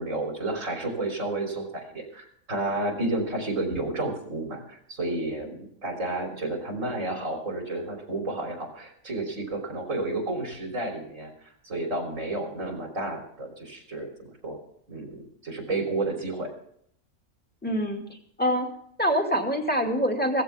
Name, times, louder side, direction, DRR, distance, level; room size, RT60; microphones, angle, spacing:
voice 1, 0.0-14.1 14.4-14.6 14.9-16.5, right 2 dB, 85° right, 1 dB, 4.0 m, -31 dB
voice 2, 17.6-18.0 18.4-18.7 19.0-20.4, equal, 5° left, 2 dB, 2.2 m, -25 dB
16.5 x 15.5 x 3.5 m, 0.68 s
omnidirectional pair, 1.3 m